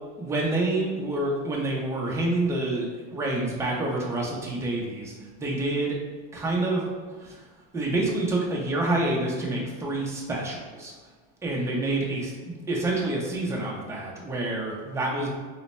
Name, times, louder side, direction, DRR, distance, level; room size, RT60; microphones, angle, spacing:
voice 1, 0.2-5.1 5.4-6.0 6.3-6.9 7.2-7.4 7.7-10.9 11.4-15.3, right 2 dB, 10° right, -3 dB, 0.4 m, -27 dB
3.1 x 2.1 x 4.0 m, 1.4 s
supercardioid pair, 135°, 38 cm